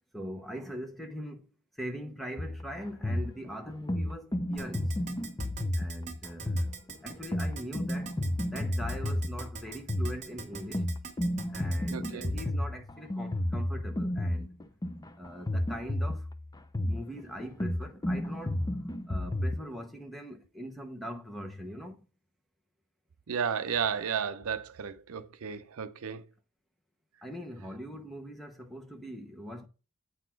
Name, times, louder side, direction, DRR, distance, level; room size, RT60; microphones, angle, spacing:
voice 1, 0.1-1.5 1.7-4.9 5.7-6.7 7.0-8.2 8.5-10.9 11.5-14.6 15.2-16.3 16.8-18.6 19.1-22.1 25.4-25.6 27.2-29.7, equal, ahead, 0.9 m, -41 dB
sound 1, 2.4-19.6, left 1 dB, 15° left, 0.5 m, -32 dB
Keyboard (musical), 4.6-12.4, right 5 dB, 35° right, 1.7 m, -42 dB
voice 2, 11.9-12.3 23.3-26.2, right 7 dB, 70° right, 0.6 m, -33 dB
8.3 x 4.1 x 4.5 m
head